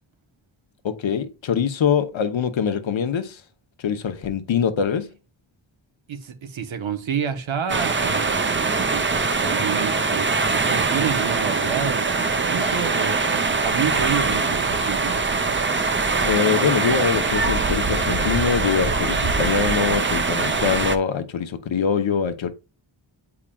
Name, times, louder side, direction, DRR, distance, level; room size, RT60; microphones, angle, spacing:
voice 1, 0.8-3.4 3.8-5.1 16.2-22.5, left 7 dB, 80° left, 0.9 m, -23 dB
voice 2, 6.1-15.2, right 7 dB, 90° right, 1.0 m, -29 dB
sound 1, 7.7-21.0, right 4 dB, 25° right, 0.5 m, -22 dB
8.7 x 4.8 x 2.3 m
wide cardioid pair, 115°, 46 cm